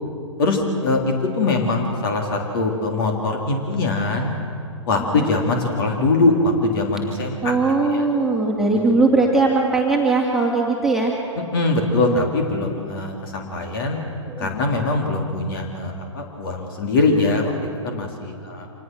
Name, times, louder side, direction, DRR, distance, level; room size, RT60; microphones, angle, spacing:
voice 1, 0.4-4.3 4.9-7.5 7.9-8.1 8.7-8.8 11.5-14.0 14.4-18.7, left 3 dB, 45° left, 2 dB, 3.3 m, -22 dB
voice 2, 7.4-11.2 12.1-12.3 14.3-14.5, right 3 dB, ahead, -3 dB, 2.5 m, -20 dB
26.0 x 19.5 x 6.2 m, 2.3 s
figure-of-eight pair, 115°, 16 cm